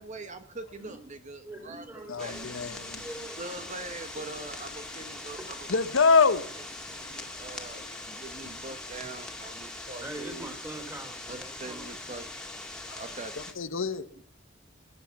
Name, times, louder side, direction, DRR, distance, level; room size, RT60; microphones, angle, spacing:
voice 1, 0.0-1.9 2.2-2.4 3.4-5.7 6.9-10.5 11.3-12.3 12.9-13.3, right 2 dB, 35° right, 1.1 m, -43 dB
voice 2, 1.4-3.4 5.4-5.5 6.9-7.1 8.4-8.7 9.0-9.1 10.0-11.9, right 1 dB, 15° right, 3.3 m, -43 dB
sound 1, 2.0-12.4, left 4 dB, 85° left, 1.6 m, -56 dB
voice 3, 2.1-3.0 5.7-6.5 12.8-13.0 13.4-14.1, left 4 dB, 70° left, 0.9 m, -25 dB
sound 2, 2.2-13.5, left 2 dB, 5° left, 2.2 m, -41 dB
22.0 x 10.0 x 5.9 m
head